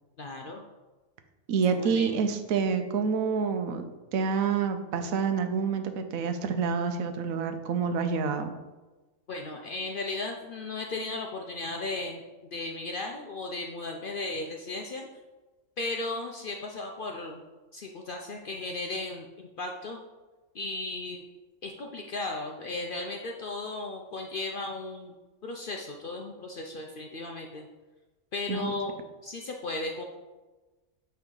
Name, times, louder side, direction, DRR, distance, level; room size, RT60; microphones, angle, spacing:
voice 1, 0.2-0.6 1.7-2.2 9.3-12.2 12.5-15.1 15.8-17.4 17.7-20.0 20.5-21.3 21.6-25.1 25.4-27.6 28.3-28.9 29.2-30.0, left 2 dB, 60° left, 2 dB, 0.5 m, -35 dB
voice 2, 1.5-8.5 28.5-28.7, right 6 dB, 85° right, 7 dB, 1.1 m, -28 dB
8.8 x 3.4 x 3.8 m, 1.2 s
omnidirectional pair, 1.4 m